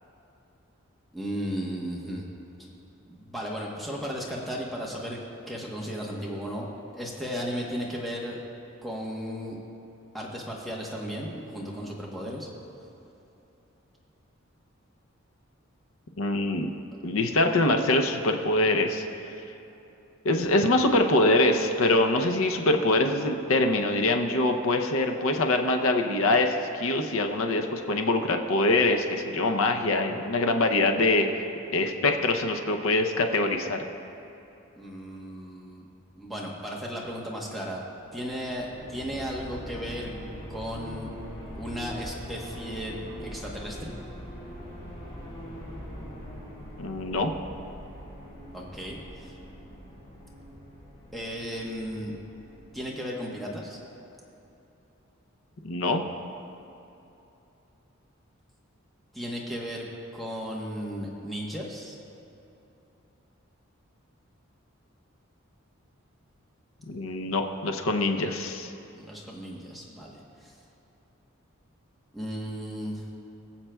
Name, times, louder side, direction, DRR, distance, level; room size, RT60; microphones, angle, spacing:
voice 1, 1.1-2.3 3.1-5.2 5.5-6.7 6.9-8.4 8.8-9.6 10.1-12.5 34.8-35.8 36.2-37.8 38.1-40.1 40.5-41.1 41.5-43.9 48.5-49.3 51.1-52.1 52.7-53.8 59.1-59.8 60.1-62.0 68.9-70.6 72.1-73.1, equal, ahead, -4 dB, 1.0 m, -35 dB
voice 2, 16.2-16.7 17.0-19.0 20.2-31.3 31.7-33.8 46.8-47.3 55.6-56.0 66.9-68.7, left 2 dB, 75° left, 4 dB, 0.6 m, -24 dB
sound 1, 38.0-52.8, equal, 25° left, 1.7 m, -42 dB
21.0 x 7.4 x 2.3 m, 2.9 s
head